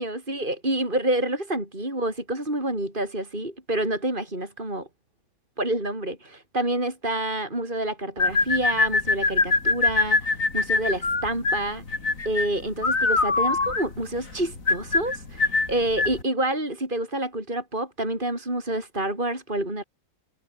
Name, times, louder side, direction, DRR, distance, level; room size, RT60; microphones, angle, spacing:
voice 1, 0.0-4.9 5.6-11.8 12.2-19.8, right 1 dB, 30° right, 6.8 m, -28 dB
sound 1, 8.2-16.2, left 3 dB, 50° left, 3.7 m, -23 dB
omnidirectional pair, 1.8 m